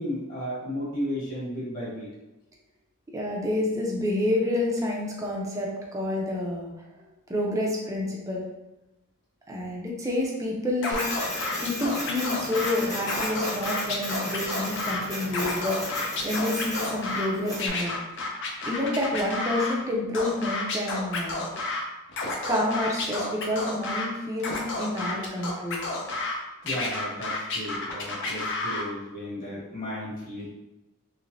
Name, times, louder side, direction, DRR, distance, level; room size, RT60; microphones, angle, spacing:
voice 1, 0.0-2.1 26.6-30.5, equal, 40° left, -7 dB, 1.5 m, -34 dB
voice 2, 3.1-6.7 7.3-8.4 9.5-11.0 11.6-18.0 18.6-21.4 22.5-25.8, left 1 dB, 15° right, -2 dB, 0.5 m, -29 dB
Scratching (performance technique), 10.8-12.7 13.0-15.0 15.3-17.3 17.6-19.7 20.1-21.8 22.1-24.1 24.4-26.3 26.7-28.8, left 3 dB, 55° left, 0.6 m, -31 dB
Printer, 10.9-17.7, left 1 dB, 15° left, 1.0 m, -34 dB
3.2 x 3.1 x 2.6 m, 1.0 s
head